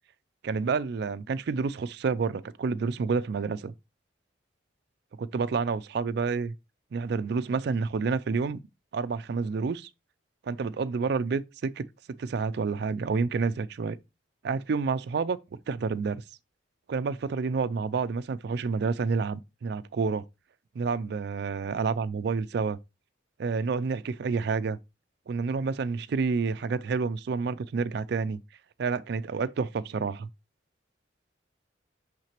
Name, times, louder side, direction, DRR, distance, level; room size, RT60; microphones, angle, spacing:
voice 1, 0.4-3.7 5.2-6.6 6.9-8.6 8.9-9.9 10.4-11.9 12.2-14.0 14.4-15.4 15.7-16.2 16.9-20.2 20.8-22.8 23.4-24.8 25.3-28.4 28.8-30.3, right 4 dB, 55° right, 0.3 m, -29 dB
5.9 x 5.7 x 2.9 m
head